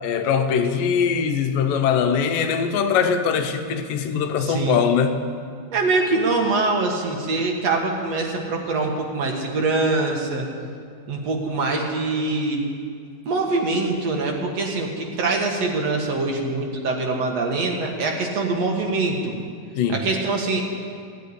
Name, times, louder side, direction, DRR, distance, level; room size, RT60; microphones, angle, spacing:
voice 1, 0.0-5.2 19.8-20.0, left 6 dB, 85° left, 7 dB, 2.7 m, -21 dB
voice 2, 4.4-4.8 5.7-10.5 11.1-12.6 13.2-19.4 19.9-20.6, right 3 dB, 55° right, 1 dB, 2.5 m, -24 dB
15.5 x 9.1 x 9.8 m, 2.3 s
omnidirectional pair, 3.8 m